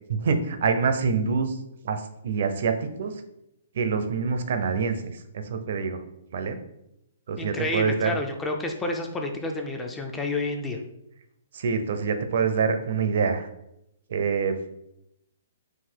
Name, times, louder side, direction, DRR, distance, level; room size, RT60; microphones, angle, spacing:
voice 1, 0.1-1.6 1.8-3.1 3.7-6.0 6.3-6.6 7.3-8.1 11.5-13.5 14.1-14.7, right 5 dB, 55° right, 8 dB, 0.5 m, -26 dB
voice 2, 7.4-10.8, left 2 dB, 10° left, 3 dB, 0.3 m, -30 dB
3.9 x 2.6 x 4.4 m, 0.83 s
hypercardioid pair, 170°, 0 cm